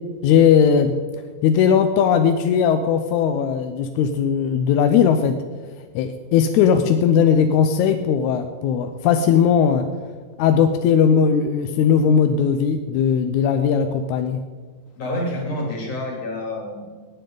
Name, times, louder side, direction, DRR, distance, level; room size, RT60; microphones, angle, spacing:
voice 1, 0.2-0.9 1.4-5.4 6.0-9.9 10.4-14.4, left 7 dB, 80° left, 7 dB, 1.8 m, -18 dB
voice 2, 15.0-16.9, left 1 dB, 50° left, -2 dB, 3.6 m, -28 dB
17.0 x 9.1 x 3.8 m, 1.5 s
omnidirectional pair, 3.8 m